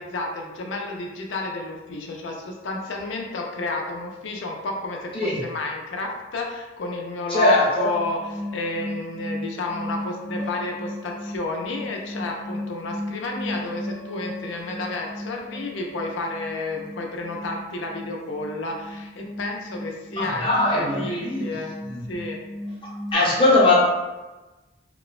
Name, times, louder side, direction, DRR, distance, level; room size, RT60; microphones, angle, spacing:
voice 1, 0.0-21.7 22.1-22.4, left 3 dB, 80° left, 1 dB, 0.5 m, -31 dB
voice 2, 7.3-7.9 20.2-21.4 21.9-22.0 23.1-23.8, left 2 dB, 30° left, -5 dB, 0.7 m, -20 dB
sound 1, 7.9-23.1, left 1 dB, ahead, 0.5 m, -36 dB
3.0 x 2.1 x 2.3 m, 1.1 s
head